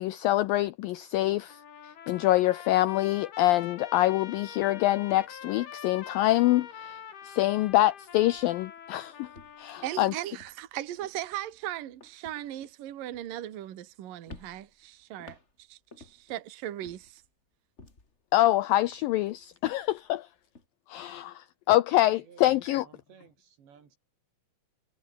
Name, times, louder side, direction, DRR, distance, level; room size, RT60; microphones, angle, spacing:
voice 1, 0.0-1.6 2.1-7.0 7.2-9.3 9.6-10.1 18.3-20.3 20.9-22.9, left 15 dB, 85° left, 2.0 m, -25 dB
Trumpet, 1.5-10.3, left 8 dB, 65° left, 5.0 m, -45 dB
sound 1, 3.4-3.6 3.9-6.9 7.2-8.1 8.3-8.7 9.2-13.9 14.3-16.4 16.8-18.2 18.6-20.7, left 3 dB, 20° left, 2.9 m, -54 dB
voice 2, 9.8-15.4 15.7-17.2, right 13 dB, 60° right, 3.2 m, -38 dB
voice 3, 22.2-24.0, right 7 dB, 85° right, 6.6 m, -56 dB
omnidirectional pair, 4.9 m